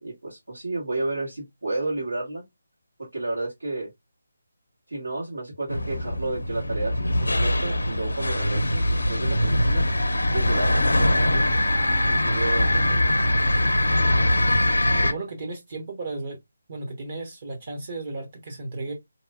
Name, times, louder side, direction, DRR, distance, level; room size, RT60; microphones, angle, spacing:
voice 1, 0.0-2.4 3.0-3.9 4.9-9.9 10.3-11.5 12.0-13.1, right 2 dB, 80° right, 1.5 m, -32 dB
sound 1, 5.7-15.1, left 1 dB, 75° left, 0.5 m, -22 dB
voice 2, 15.0-16.4 16.7-18.9, right 2 dB, 40° right, 0.9 m, -34 dB
3.8 x 2.9 x 2.3 m
figure-of-eight pair, 150°, 0 cm